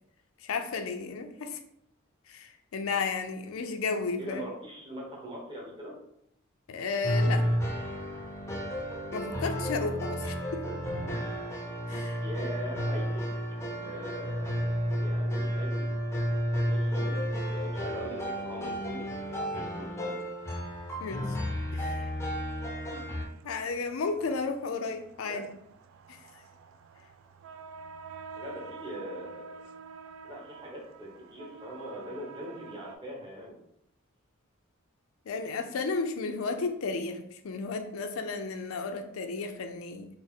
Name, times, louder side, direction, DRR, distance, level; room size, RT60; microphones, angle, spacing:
voice 1, 0.4-1.6 2.3-4.4 6.7-7.5 9.1-10.6 11.9-12.2 21.0-21.4 21.7-22.1 22.9-25.5 26.1-26.4 35.3-40.1, left 4 dB, 90° left, 6 dB, 0.4 m, -33 dB
voice 2, 4.2-5.9 10.6-10.8 12.2-13.2 13.8-15.7 16.2-17.2 17.5-20.2 25.2-25.4 28.3-29.4 30.2-33.6, equal, 25° right, -3 dB, 1.0 m, -42 dB
sound 1, 7.0-23.2, equal, 15° left, 0.5 m, -32 dB
sound 2, 17.5-33.0, right 4 dB, 70° right, 0.3 m, -50 dB
4.1 x 2.0 x 3.6 m, 0.76 s
head